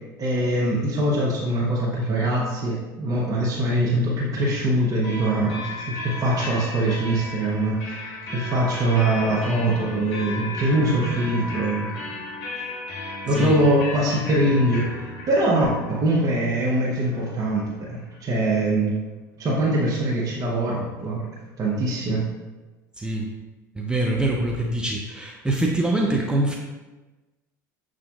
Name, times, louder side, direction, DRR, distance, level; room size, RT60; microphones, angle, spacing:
voice 1, 0.2-11.9 12.6-12.7 13.3-14.9 15.3-18.9 19.4-21.2 21.6-22.2, right 1 dB, 35° right, -4 dB, 0.8 m, -23 dB
sound 1, 5.0-18.6, left 3 dB, 65° left, 1.0 m, -35 dB
voice 2, 13.3-13.6 23.0-23.3 23.7-26.6, right 1 dB, 10° right, -1 dB, 0.4 m, -24 dB
6.8 x 2.5 x 2.3 m, 1.2 s
hypercardioid pair, 75°, 10 cm